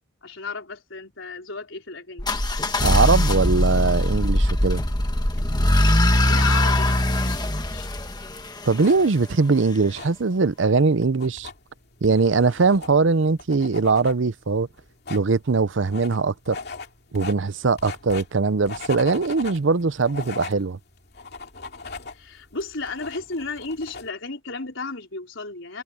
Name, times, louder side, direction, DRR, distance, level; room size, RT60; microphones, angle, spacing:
voice 1, 0.2-2.3 5.9-7.9 22.1-25.8, left 3 dB, 65° left, 4.4 m, -34 dB
sound 1, 2.2-9.1, left 1 dB, 20° left, 1.4 m, -21 dB
voice 2, 2.8-4.8 8.7-11.5 12.0-14.7 15.1-16.6 17.1-20.8, right 4 dB, 65° right, 0.6 m, -21 dB
sound 2, 5.2-24.1, left 4 dB, 50° left, 2.6 m, -41 dB
head